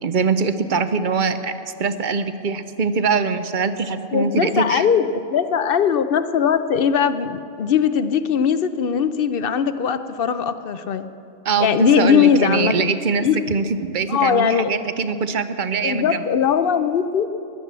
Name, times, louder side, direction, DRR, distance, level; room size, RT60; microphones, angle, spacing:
voice 1, 0.0-1.5 1.8-4.8 11.4-16.2, right 5 dB, 50° right, 11 dB, 0.8 m, -22 dB
voice 2, 4.1-11.1 11.6-12.9 13.2-13.6 14.1-14.8 15.8-17.3, left 7 dB, 55° left, 11 dB, 0.8 m, -20 dB
16.5 x 11.5 x 7.4 m, 2.7 s
omnidirectional pair, 1.3 m